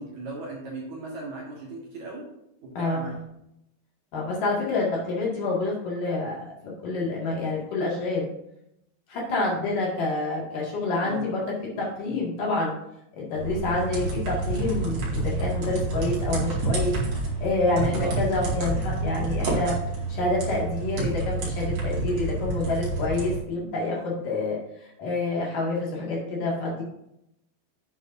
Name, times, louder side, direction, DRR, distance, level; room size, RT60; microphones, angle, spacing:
voice 1, 0.0-2.3 2.6-3.2 11.0-11.3 11.7-12.2 18.0-18.1, right 3 dB, 60° right, -3 dB, 2.1 m, -37 dB
voice 2, 2.7-3.1 4.1-8.3 9.1-11.4 11.8-12.7 13.1-16.9 17.4-19.8 20.1-26.8, left 2 dB, 50° left, -4 dB, 3.2 m, -28 dB
sound 1, 13.3-23.4, right 2 dB, 45° right, 2.5 m, -28 dB
9.6 x 8.6 x 2.7 m, 0.81 s
omnidirectional pair, 5.5 m